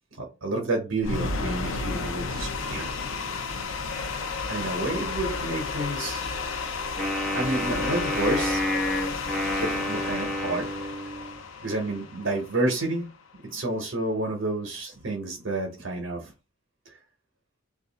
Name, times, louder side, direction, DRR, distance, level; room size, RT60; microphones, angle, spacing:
voice 1, 0.2-3.0 4.5-6.3 7.3-8.6 9.6-10.9 11.6-13.1 13.4-16.3 16.9-17.0, right 2 dB, 70° right, 1 dB, 0.8 m, -30 dB
sound 1, 1.0-13.2, left 4 dB, 70° left, 0.5 m, -32 dB
Wind instrument woodwind instrument, 7.0-11.4, equal, ahead, 0.7 m, -29 dB
2.7 x 2.5 x 3.9 m, 0.30 s
head